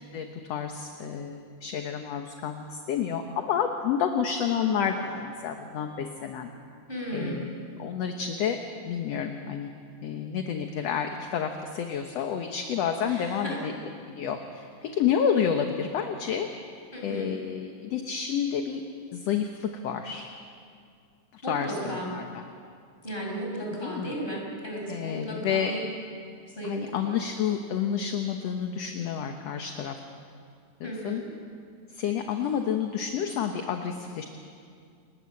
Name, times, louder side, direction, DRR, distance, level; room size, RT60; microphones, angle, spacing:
voice 1, 0.1-6.5 7.1-8.6 8.9-9.7 10.0-13.7 14.1-16.5 17.0-18.8 19.1-20.3 21.3-22.4 23.8-24.1 24.9-25.7 26.6-30.0 30.8-31.2 31.9-34.3, left 8 dB, 65° left, 5 dB, 2.1 m, -30 dB
voice 2, 4.5-4.9 6.9-7.5 13.0-13.6 16.9-17.3 21.4-22.1 23.0-25.8 26.4-27.2 30.8-31.3, right 1 dB, 15° left, -1 dB, 5.9 m, -35 dB
28.5 x 20.5 x 7.7 m, 2.3 s
omnidirectional pair, 3.5 m